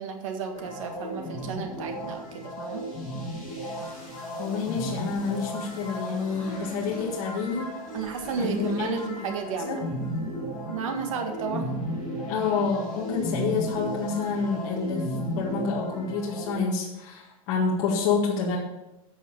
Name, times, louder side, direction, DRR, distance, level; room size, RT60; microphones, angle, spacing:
voice 1, 0.0-2.8 7.9-9.8 10.7-11.7, right 6 dB, 60° right, 4 dB, 1.8 m, -33 dB
sound 1, 0.5-16.5, equal, ahead, 4.2 m, -35 dB
voice 2, 4.4-7.7 8.4-8.9 9.7-9.8 12.3-15.1 15.4-18.6, left 5 dB, 35° left, -4 dB, 1.8 m, -28 dB
12.0 x 6.3 x 5.5 m, 0.97 s
supercardioid pair, 175°, 19 cm